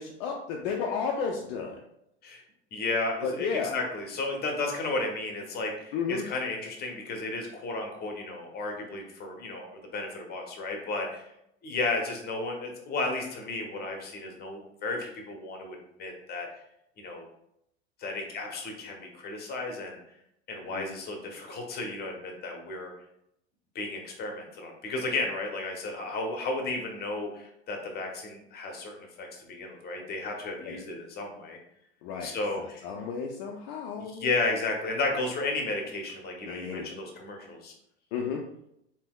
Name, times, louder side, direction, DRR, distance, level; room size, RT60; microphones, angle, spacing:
voice 1, 0.0-1.8 3.2-3.8 5.9-6.2 20.7-20.9 30.6-30.8 32.0-34.3 36.5-36.9 38.1-38.4, left 6 dB, 55° left, 1 dB, 0.5 m, -33 dB
voice 2, 2.7-11.3 11.6-16.5 17.0-17.3 18.0-20.0 20.5-22.9 23.7-31.6 32.2-32.8 34.1-37.7, left 3 dB, 30° left, 2 dB, 0.8 m, -33 dB
3.3 x 2.8 x 2.3 m, 0.78 s
hypercardioid pair, 85°, 34 cm